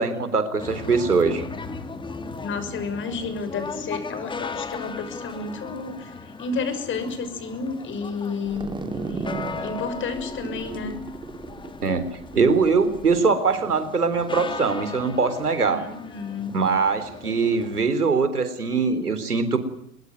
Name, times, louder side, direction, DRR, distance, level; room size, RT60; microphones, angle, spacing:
voice 1, 0.0-1.4 11.8-12.1 12.4-15.8 16.5-19.6, right 4 dB, 80° right, 12 dB, 3.8 m, -22 dB
sound 1, 0.6-17.8, left 4 dB, 10° left, 2.4 m, -37 dB
voice 2, 2.4-6.1 6.4-8.7 9.1-9.3 9.6-11.0 15.6-16.5, left 4 dB, 25° left, 10 dB, 6.3 m, -31 dB
sound 2, 8.5-13.1, right 3 dB, 10° right, 3.0 m, -35 dB
24.0 x 22.0 x 9.5 m, 0.75 s
figure-of-eight pair, 100°, 45 cm